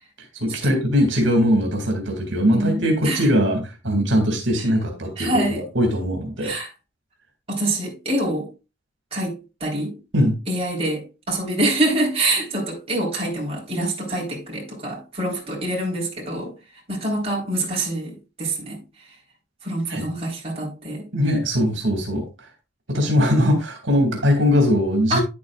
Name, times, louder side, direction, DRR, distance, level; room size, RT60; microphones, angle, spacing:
voice 1, 0.3-6.5 10.1-10.4 19.9-20.1 21.1-22.3 22.9-25.2, equal, 80° right, 2.3 m, -20 dB
voice 2, 2.5-3.2 4.6-4.7 5.2-5.6 6.4-6.7 7.5-8.5 9.1-10.0 10.5-16.5 16.9-18.8 19.6-21.0 25.1-25.2, right 1 dB, 35° right, 4.0 m, -25 dB
9.9 x 8.5 x 2.4 m
head